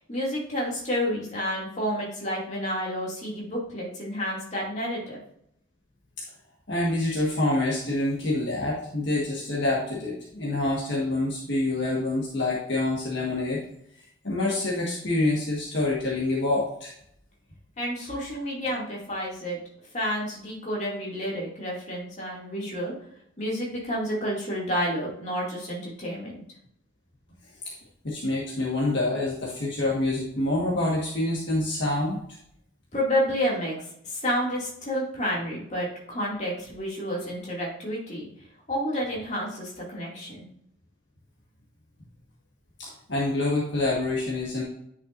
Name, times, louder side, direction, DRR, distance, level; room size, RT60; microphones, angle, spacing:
voice 1, 0.1-5.2 17.8-19.6 19.9-22.9 23.4-26.4 32.9-38.3 38.7-40.5, equal, 35° left, -4 dB, 2.5 m, -30 dB
voice 2, 6.7-13.6 14.2-16.9 27.6-27.7 28.0-32.2 42.8-44.6, left 2 dB, 55° left, -5 dB, 1.6 m, -26 dB
9.6 x 5.9 x 2.6 m, 0.72 s
head